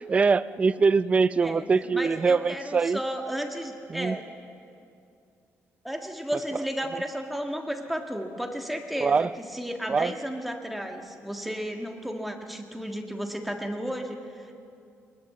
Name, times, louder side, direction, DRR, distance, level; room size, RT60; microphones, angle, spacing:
voice 1, 0.0-3.0 3.9-4.2 9.0-9.3 9.9-10.1, right 4 dB, 25° right, 15 dB, 0.5 m, -23 dB
voice 2, 1.9-4.2 5.8-14.6, equal, ahead, 3 dB, 1.7 m, -33 dB
21.0 x 20.5 x 7.6 m, 2.5 s
cardioid pair, 160°, 5 cm